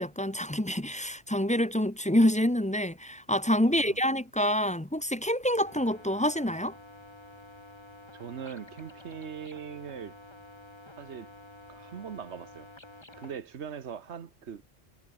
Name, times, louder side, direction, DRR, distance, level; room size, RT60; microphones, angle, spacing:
voice 1, 0.0-6.7, equal, 5° left, 0.8 m, -27 dB
voice 2, 3.6-4.0 8.1-10.2 11.0-11.3 11.7-12.7 13.2-14.6, right 7 dB, 80° right, 1.4 m, -41 dB
sound 1, 5.6-13.3, left 2 dB, 25° left, 2.5 m, -50 dB
omnidirectional pair, 1.1 m